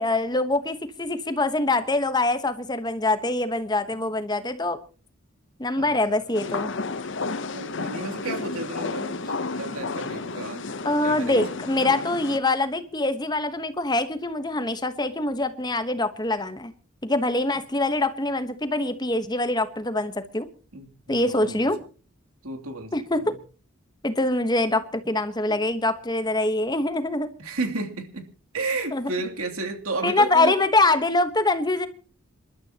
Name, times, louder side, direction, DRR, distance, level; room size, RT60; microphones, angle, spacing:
voice 1, 0.0-4.8 5.6-6.7 10.8-16.7 17.0-20.5 21.1-21.8 22.9-23.4 24.0-27.3 28.9-29.1 30.0-31.9, left 2 dB, 20° left, 1.1 m, -24 dB
voice 2, 5.8-6.2 7.5-10.7 11.0-11.4 20.7-21.6 22.4-23.3 24.7-24.8 25.5-25.6 27.4-28.3 28.5-30.6, right 3 dB, 90° right, 2.9 m, -32 dB
sound 1, 6.3-12.4, left 3 dB, 55° left, 0.8 m, -32 dB
27.5 x 12.5 x 2.9 m
head